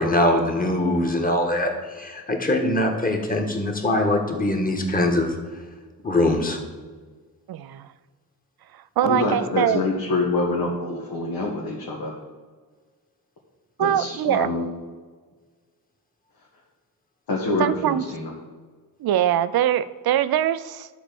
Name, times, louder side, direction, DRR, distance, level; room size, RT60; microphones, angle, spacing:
voice 1, 0.0-5.3 6.0-6.6, left 1 dB, 25° left, 2 dB, 1.5 m, -22 dB
voice 2, 7.5-7.9 9.0-9.8 13.8-14.5 17.6-18.0 19.0-20.9, right 11 dB, 80° right, 14 dB, 0.5 m, -22 dB
voice 3, 9.0-12.1 13.8-14.7 17.3-18.3, left 3 dB, 80° left, -4 dB, 1.6 m, -26 dB
9.9 x 4.3 x 6.9 m, 1.5 s
cardioid pair, 95°, 36 cm